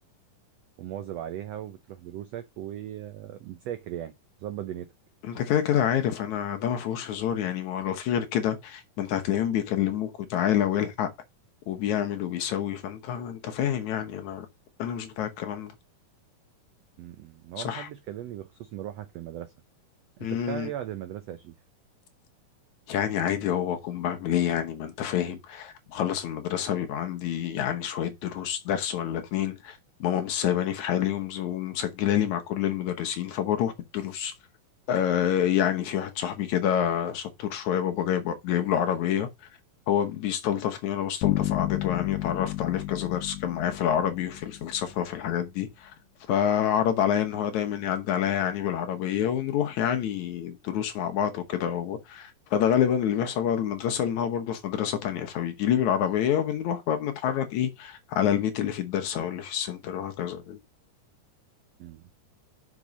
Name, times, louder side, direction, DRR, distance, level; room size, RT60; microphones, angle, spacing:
voice 1, 0.8-4.1 4.4-4.9 17.0-19.5 20.2-21.5 61.8-62.0, right 11 dB, 85° right, 1.4 m, -38 dB
voice 2, 5.2-11.1 11.7-14.5 14.8-15.7 17.6-17.9 20.2-20.7 22.9-34.3 34.9-39.3 39.9-45.9 46.3-60.6, left 10 dB, 65° left, 2.1 m, -27 dB
sound 1, 41.2-44.9, left 15 dB, 90° left, 2.5 m, -31 dB
6.1 x 6.0 x 5.3 m
omnidirectional pair, 4.0 m